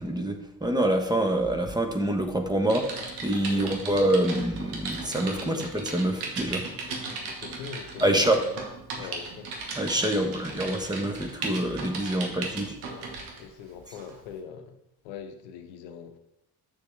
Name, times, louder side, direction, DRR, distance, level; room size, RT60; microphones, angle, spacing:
voice 1, 0.0-2.9 3.2-6.6 8.0-8.4 9.7-12.8, right 1 dB, 10° right, 1.3 m, -26 dB
Typing, 2.7-13.4 13.9-14.1, right 3 dB, 70° right, 1.6 m, -37 dB
voice 2, 6.7-8.6 9.0-9.5 10.0-10.4 12.1-12.6 12.9-13.1 13.4-14.8 15.0-16.2, left 7 dB, 70° left, 0.9 m, -43 dB
7.6 x 6.6 x 3.5 m
hypercardioid pair, 45°, 48 cm